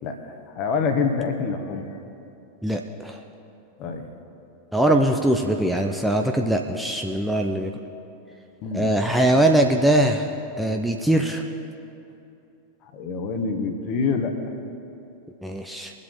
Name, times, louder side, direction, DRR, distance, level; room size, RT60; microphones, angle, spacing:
voice 1, 0.0-1.8 3.8-4.1 8.6-8.9 12.9-14.3, left 5 dB, 40° left, 5 dB, 1.4 m, -26 dB
voice 2, 2.6-3.2 4.7-7.7 8.7-11.4 15.4-15.9, right 1 dB, ahead, 2 dB, 0.7 m, -21 dB
21.5 x 7.7 x 3.8 m, 2.7 s
figure-of-eight pair, 90°, 0 cm